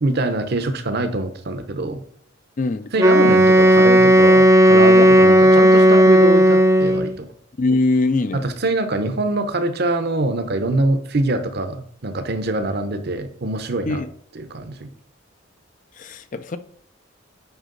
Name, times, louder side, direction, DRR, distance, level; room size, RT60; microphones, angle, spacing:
voice 1, 0.0-2.0 2.9-7.3 8.3-14.0 14.3-14.9, right 2 dB, 50° right, 9 dB, 0.7 m, -24 dB
voice 2, 2.6-2.9 5.0-5.1 5.6-5.7 7.6-8.4 13.9-14.1 16.0-16.6, left 3 dB, 35° left, 11 dB, 0.4 m, -22 dB
Wind instrument woodwind instrument, 3.0-7.1, equal, 15° right, 0.5 m, -12 dB
8.0 x 5.0 x 3.8 m, 0.65 s
head